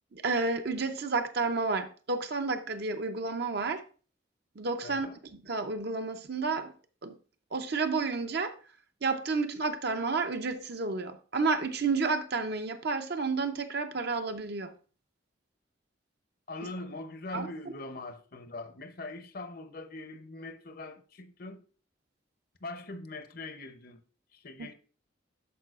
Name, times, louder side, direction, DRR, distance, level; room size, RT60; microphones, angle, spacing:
voice 1, 0.1-3.8 4.6-5.1 5.3-6.7 7.0-7.2 7.5-8.5 9.0-14.7 17.3-17.5 24.6-24.7, right 4 dB, 55° right, 0.7 m, -31 dB
voice 2, 4.8-5.2 16.5-21.6 22.6-24.0 24.3-24.7, left 2 dB, 50° left, 0.7 m, -42 dB
12.5 x 4.7 x 2.4 m
head